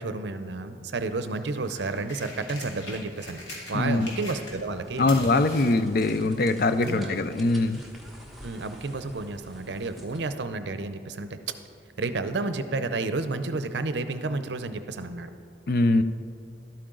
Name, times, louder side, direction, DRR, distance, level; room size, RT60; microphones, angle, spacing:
voice 1, 0.0-5.1 6.8-7.2 8.4-11.6 12.0-15.3, right 3 dB, 70° right, 10 dB, 0.6 m, -31 dB
sound 1, 1.2-4.8 5.0-7.0 7.9-8.0, left 2 dB, 85° left, 2.4 m, -42 dB
voice 2, 3.7-4.1 5.0-7.8 15.7-16.0, left 2 dB, 55° left, 11 dB, 0.4 m, -22 dB
sound 2, 4.3-10.4, equal, ahead, 1.2 m, -48 dB
12.5 x 8.6 x 3.8 m, 2.3 s
head